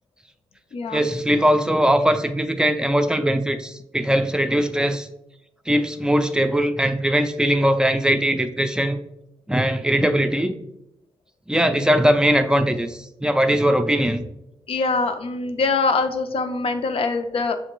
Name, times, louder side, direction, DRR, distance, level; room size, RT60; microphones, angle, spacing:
voice 1, 0.9-5.1 5.7-9.0 9.5-10.5 11.5-14.3, equal, 5° right, 8 dB, 0.4 m, -20 dB
voice 2, 14.7-17.6, left 4 dB, 60° left, 7 dB, 0.5 m, -23 dB
6.7 x 2.5 x 3.0 m, 0.83 s
cardioid pair, 65°, 11 cm